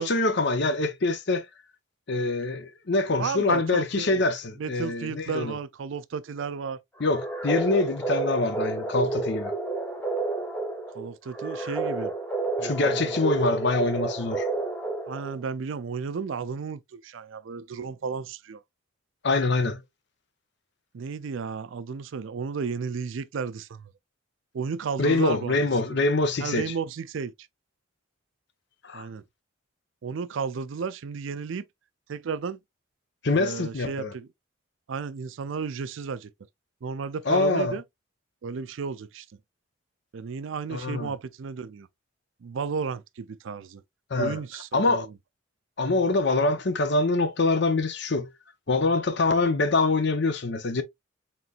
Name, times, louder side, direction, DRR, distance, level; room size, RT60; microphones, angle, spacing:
voice 1, 0.0-1.5 2.1-5.5 7.0-9.5 12.6-14.5 19.2-19.8 25.0-26.7 28.8-29.1 33.2-34.1 37.3-37.8 40.7-41.1 44.1-44.4 44.7-45.1 45.8-48.3 48.7-50.8, left 3 dB, 55° left, 0.7 m, -25 dB
voice 2, 3.2-4.2 4.6-6.8 10.9-12.1 12.6-13.1 15.1-18.6 20.9-23.9 24.5-25.6 25.9-26.0 26.4-27.3 28.9-29.2 30.0-31.6 32.1-32.6 33.3-34.3 34.9-36.3 36.8-37.8 38.4-39.3 40.1-41.9 42.4-43.8 44.2-45.1, right 5 dB, 65° right, 0.4 m, -33 dB
sound 1, 7.0-15.4, right 3 dB, 10° left, 0.9 m, -30 dB
4.3 x 3.8 x 2.4 m
head